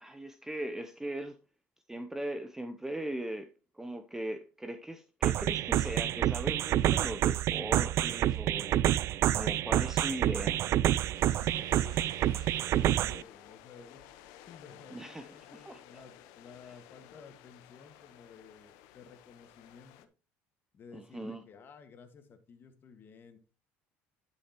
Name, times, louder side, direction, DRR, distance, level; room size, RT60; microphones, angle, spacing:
voice 1, 0.0-1.4 1.9-3.5 3.7-8.8 9.3-10.6 14.9-16.0 20.9-21.4, right 1 dB, 10° right, 8 dB, 0.7 m, -39 dB
sound 1, 5.2-13.2, right 12 dB, 55° right, 0.4 m, -28 dB
sound 2, 11.1-20.1, left 11 dB, 85° left, 0.8 m, -55 dB
voice 2, 11.4-14.0 14.5-20.1 20.7-23.4, left 6 dB, 40° left, 7 dB, 1.8 m, -54 dB
11.0 x 6.5 x 3.0 m, 0.34 s
supercardioid pair, 105°, 5 cm